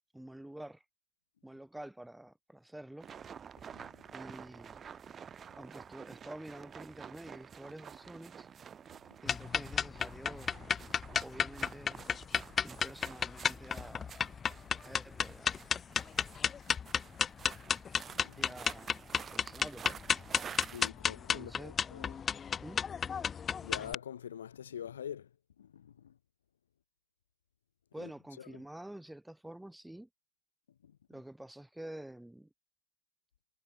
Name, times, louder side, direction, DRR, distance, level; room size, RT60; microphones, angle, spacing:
voice 1, 0.1-0.8 1.4-3.1 4.1-4.8 5.6-8.5 9.2-10.6 11.2-12.0 12.6-14.2 14.5-15.5 18.4-20.0 21.3-21.8 22.6-22.8 27.9-30.1 31.1-32.5, right 1 dB, 5° right, 3.9 m, -48 dB
sound 1, 3.0-20.9, right 7 dB, 20° right, 3.6 m, -50 dB
sound 2, 9.3-23.9, left 7 dB, 20° left, 1.2 m, -33 dB
voice 2, 18.2-18.5 20.5-22.1 23.6-25.3 25.6-26.2 28.0-28.1 28.4-28.6 30.8-31.0, left 9 dB, 65° left, 4.5 m, -45 dB
figure-of-eight pair, 90°, 0 cm